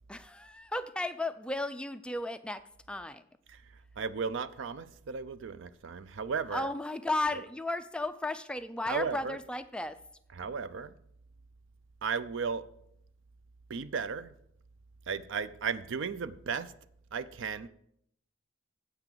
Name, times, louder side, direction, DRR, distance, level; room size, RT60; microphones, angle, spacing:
voice 1, 0.1-2.6 2.9-3.2 6.5-10.0, left 2 dB, 5° left, 0.3 m, -34 dB
voice 2, 4.0-6.7 8.9-9.4 10.3-10.9 12.0-12.6 13.7-14.3 15.1-16.7 17.1-17.7, right 5 dB, 65° right, 0.5 m, -35 dB
8.1 x 6.0 x 6.7 m
head